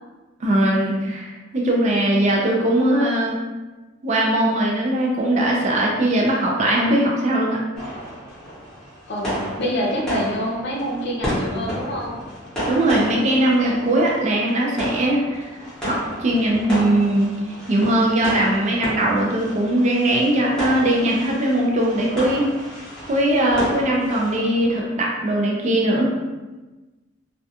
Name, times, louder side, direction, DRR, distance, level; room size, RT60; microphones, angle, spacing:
voice 1, 0.4-3.4 4.0-7.6 12.6-15.5 15.8-22.5 23.1-26.1, right 1 dB, 35° right, -2 dB, 0.3 m, -20 dB
sound 1, 7.8-24.8, equal, 5° left, 0.8 m, -32 dB
voice 2, 9.1-12.2, equal, 55° left, -2 dB, 0.5 m, -26 dB
2.2 x 2.2 x 2.7 m, 1.2 s
head